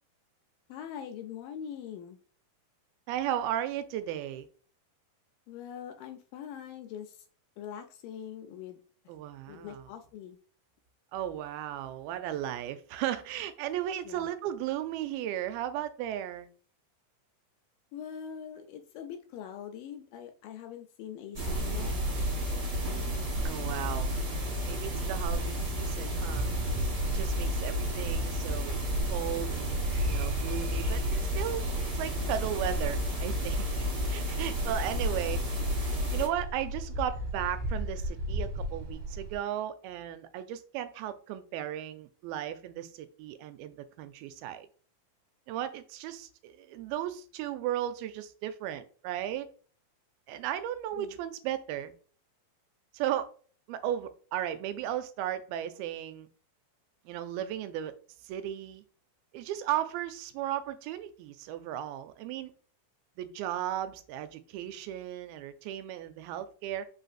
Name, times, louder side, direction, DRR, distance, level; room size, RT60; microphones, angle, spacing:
voice 1, 0.7-2.2 5.5-7.2 7.6-8.8 9.5-10.4 14.1-14.3 17.9-21.9 51.0-51.1, left 8 dB, 80° left, 2.1 m, -43 dB
voice 2, 3.1-4.5 9.1-9.9 11.1-16.5 23.4-24.1 24.6-26.5 27.1-28.8 29.1-31.0 31.4-31.7 31.9-35.4 36.1-44.7 45.5-49.5 50.3-51.9 52.9-53.3 53.7-56.3 57.1-57.9 58.2-58.8 59.3-62.5 63.2-66.9, right 11 dB, 85° right, 2.4 m, -35 dB
sound 1, 21.3-36.3, equal, 45° right, 1.6 m, -31 dB
sound 2, 25.6-39.4, equal, 70° right, 2.3 m, -38 dB
5.3 x 4.0 x 2.5 m
omnidirectional pair, 4.2 m